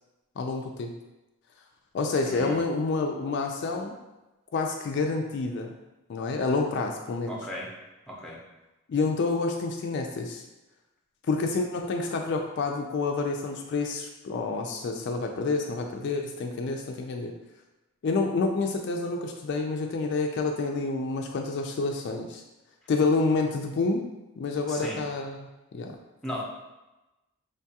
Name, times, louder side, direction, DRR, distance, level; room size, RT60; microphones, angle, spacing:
voice 1, 0.4-0.9 1.9-3.9 4.5-5.7 6.1-7.4 8.9-10.4 11.2-17.3 18.0-22.4 22.9-24.0 24.4-25.5 25.7-26.0, left 3 dB, 50° left, 2 dB, 0.3 m, -28 dB
voice 2, 2.2-2.6 7.3-7.7 8.1-8.4 24.7-25.0 26.2-26.4, equal, ahead, -3 dB, 0.5 m, -36 dB
5.1 x 2.3 x 2.7 m, 1.0 s
head